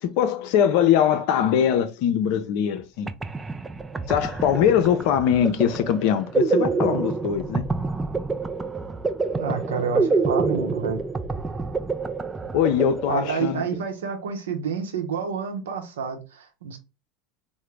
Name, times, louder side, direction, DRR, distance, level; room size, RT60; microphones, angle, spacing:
voice 1, 0.0-3.1 4.1-7.6 12.5-13.6, left 9 dB, 60° left, 0.5 m, -22 dB
sound 1, 2.8-2.9 3.1-13.7, right 3 dB, 15° right, 0.4 m, -27 dB
voice 2, 9.4-11.0 13.1-16.8, right 6 dB, 75° right, 0.7 m, -29 dB
3.7 x 2.1 x 3.2 m
hypercardioid pair, 75°, 0 cm